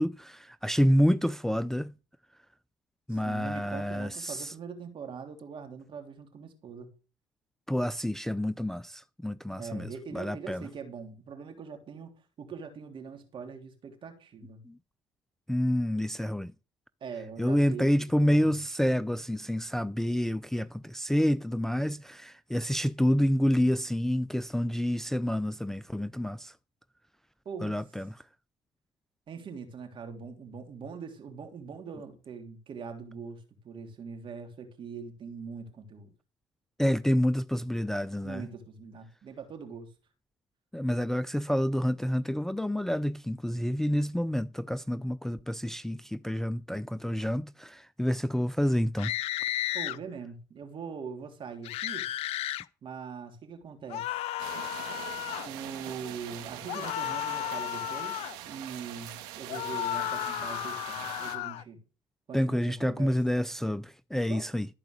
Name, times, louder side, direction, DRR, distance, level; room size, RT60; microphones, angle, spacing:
voice 1, 0.0-1.9 3.1-4.5 7.7-10.6 14.7-14.8 15.5-16.5 17.4-26.5 27.6-28.1 36.8-38.5 40.7-49.1 62.3-64.7, equal, 5° left, 0.5 m, -28 dB
voice 2, 3.1-6.9 9.6-12.1 12.4-14.6 17.0-17.9 18.2-18.5 27.4-27.8 29.3-36.1 38.2-39.9 49.7-52.1 52.8-54.2 55.4-58.2 58.4-61.8 62.3-63.1 64.1-64.5, right 5 dB, 50° right, 3.4 m, -42 dB
sound 1, 49.0-50.0 51.6-52.6 53.9-55.5 56.7-58.4 59.5-61.6, left 13 dB, 70° left, 0.6 m, -33 dB
sound 2, 54.4-61.4, right 12 dB, 85° right, 1.7 m, -43 dB
14.0 x 4.9 x 8.0 m
supercardioid pair, 70°, 11 cm